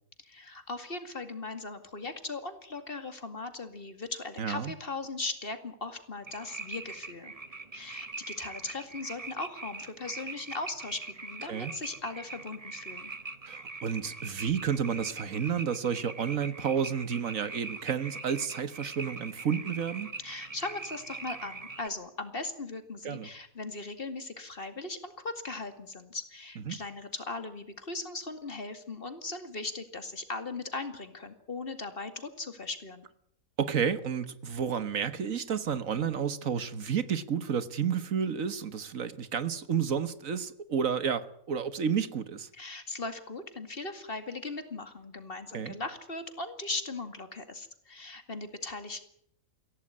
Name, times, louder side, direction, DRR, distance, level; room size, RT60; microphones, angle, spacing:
voice 1, 0.2-7.3 7.7-13.1 20.2-33.0 42.5-49.1, left 3 dB, 40° left, 2.4 m, -38 dB
voice 2, 4.4-4.7 11.5-11.7 13.5-20.1 23.0-23.3 26.7-26.8 33.6-42.5 45.5-45.8, right 7 dB, 70° right, 1.7 m, -31 dB
sound 1, 6.3-21.9, right 3 dB, 30° right, 1.3 m, -42 dB
23.5 x 16.5 x 9.7 m
omnidirectional pair, 1.4 m